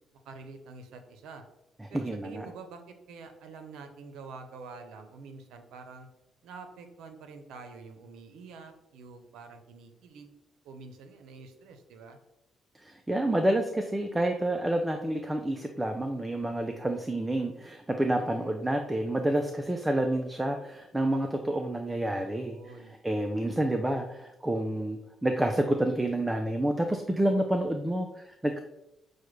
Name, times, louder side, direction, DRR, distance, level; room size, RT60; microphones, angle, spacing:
voice 1, 0.2-1.4 1.9-6.1 6.4-10.3 10.6-12.2 18.2-18.5 22.1-22.9, right 4 dB, 85° right, 6 dB, 0.6 m, -47 dB
voice 2, 1.8-2.5 12.8-28.6, right 1 dB, 10° right, 5 dB, 0.3 m, -29 dB
6.2 x 2.2 x 3.1 m, 0.87 s
cardioid pair, 90°, 0 cm